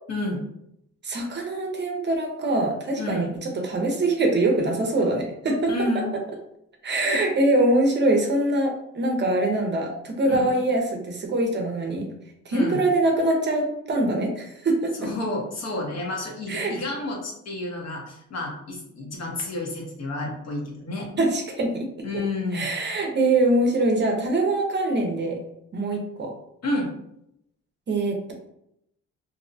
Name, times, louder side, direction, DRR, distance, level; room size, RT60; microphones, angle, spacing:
voice 1, 0.1-0.4 3.0-3.3 5.7-6.1 7.0-7.2 10.3-10.5 12.5-12.8 15.0-21.1 22.0-22.7 26.6-26.9, left 2 dB, 55° left, -1 dB, 0.9 m, -30 dB
voice 2, 1.0-5.7 6.8-12.1 12.5-15.1 16.5-16.7 21.2-21.9 22.5-25.4 25.7-26.3 27.9-28.3, right 2 dB, 35° right, 2 dB, 0.6 m, -23 dB
2.6 x 2.1 x 2.6 m, 0.78 s
cardioid pair, 90°, 30 cm